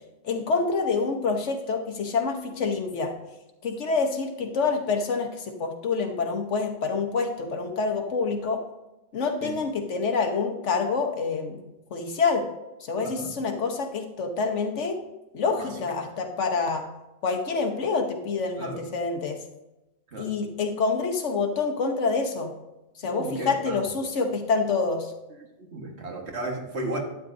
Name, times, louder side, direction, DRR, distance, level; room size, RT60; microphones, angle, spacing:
voice 1, 0.2-3.1 3.6-8.6 9.1-11.6 11.9-12.5 12.9-15.0 15.3-16.9 17.2-19.4 20.2-22.5 23.0-25.1, left 4 dB, 85° left, 4 dB, 1.4 m, -27 dB
voice 2, 13.0-13.4 15.6-15.7 18.6-18.8 20.1-20.4 23.0-23.8 25.4-27.0, right 2 dB, 65° right, 1 dB, 1.8 m, -35 dB
11.5 x 9.2 x 2.6 m, 0.99 s
omnidirectional pair, 1.2 m